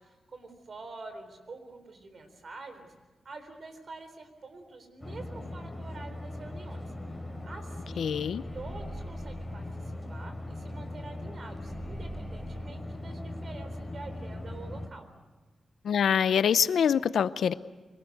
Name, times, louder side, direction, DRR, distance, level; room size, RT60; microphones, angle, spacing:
voice 1, 0.0-2.9 3.2-6.9 7.4-8.1 8.5-15.1, right 3 dB, 55° right, 8 dB, 3.9 m, -46 dB
sound 1, 5.0-14.9, left 1 dB, 10° left, 3.7 m, -39 dB
sound 2, 7.4-7.6 7.9-10.8 11.0-11.1 11.5-12.7, right 2 dB, 10° right, 2.9 m, -46 dB
voice 2, 8.0-8.4 15.8-17.5, left 8 dB, 85° left, 15 dB, 0.7 m, -25 dB
25.5 x 19.5 x 8.0 m, 1.2 s
cardioid pair, 90°, 0 cm